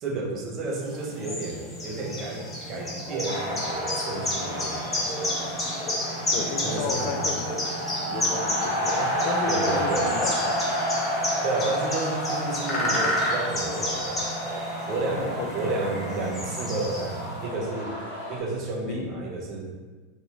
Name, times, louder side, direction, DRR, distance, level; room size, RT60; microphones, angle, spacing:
voice 1, 0.0-5.5 6.6-7.4 9.5-10.1 11.4-14.2 14.8-18.0 18.3-19.7, right 2 dB, 45° right, 0 dB, 0.6 m, -31 dB
sound 1, 0.8-17.4, left 1 dB, 20° left, 0.8 m, -31 dB
sound 2, 3.2-18.4, equal, 90° right, 0.8 m, -31 dB
voice 2, 6.3-7.5 8.1-10.7 15.1-15.5 18.8-19.1, left 5 dB, 55° left, 5 dB, 0.3 m, -33 dB
2.6 x 2.3 x 2.9 m, 1.3 s
hypercardioid pair, 105°, 0 cm